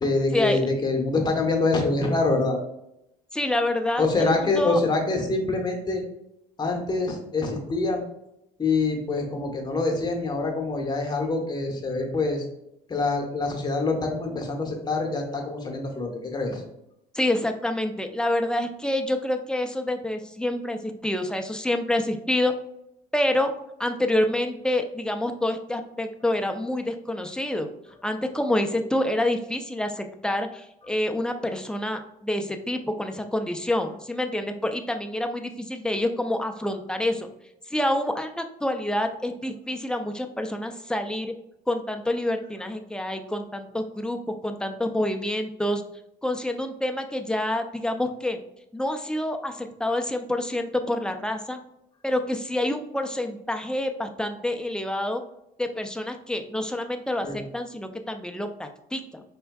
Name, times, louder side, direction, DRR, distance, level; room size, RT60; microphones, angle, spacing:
voice 1, 0.0-2.6 4.0-6.0 6.6-8.0 8.6-12.4 12.9-16.6 57.2-57.4, left 3 dB, 25° left, 2 dB, 1.0 m, -25 dB
voice 2, 3.3-4.8 17.1-22.5 23.1-23.5 23.8-27.7 28.0-37.3 37.7-41.3 41.7-45.8 46.2-48.4 48.7-51.6 52.0-55.2 55.6-59.2, left 1 dB, 5° left, 5 dB, 0.4 m, -27 dB
4.2 x 3.5 x 2.3 m, 0.81 s
cardioid pair, 110°, 17 cm